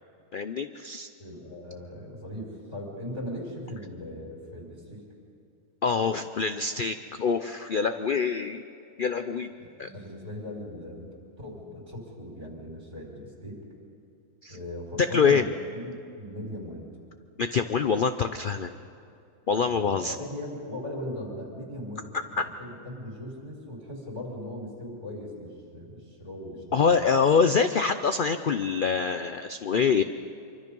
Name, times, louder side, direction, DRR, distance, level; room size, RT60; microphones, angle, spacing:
voice 1, 0.3-1.1 5.8-8.6 9.0-9.5 9.8-9.9 14.4-14.6 15.0-15.5 17.4-18.7 19.5-20.2 22.1-22.4 26.7-30.0, left 5 dB, 70° left, 9 dB, 0.5 m, -25 dB
voice 2, 1.2-5.0 9.6-13.6 14.5-16.9 19.7-27.1, left 1 dB, 35° right, -1 dB, 4.9 m, -39 dB
25.0 x 24.0 x 5.4 m, 2.5 s
omnidirectional pair, 1.6 m